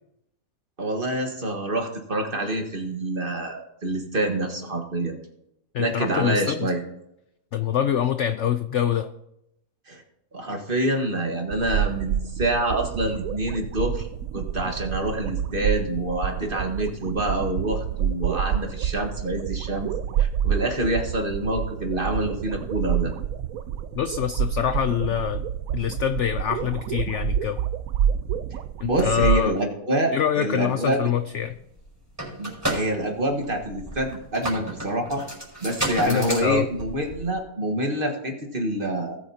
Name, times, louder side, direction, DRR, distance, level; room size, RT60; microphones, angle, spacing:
voice 1, 0.8-5.1 5.8-6.8 9.9-10.0 10.3-14.1 14.3-19.9 20.2-23.1 28.5-31.0 32.4-35.2 35.6-39.2, right 1 dB, 35° right, 3 dB, 1.5 m, -26 dB
voice 2, 5.7-6.7 7.5-9.1 23.9-25.4 25.7-27.6 28.8-29.5 30.1-31.5 36.1-36.7, left 9 dB, 70° left, 10 dB, 0.7 m, -25 dB
sound 1, 11.5-29.4, right 9 dB, 70° right, 0.9 m, -28 dB
sound 2, 31.4-31.5 31.7-37.4, right 1 dB, 10° right, 5.2 m, -31 dB
19.0 x 8.3 x 2.8 m, 0.81 s
omnidirectional pair, 1.7 m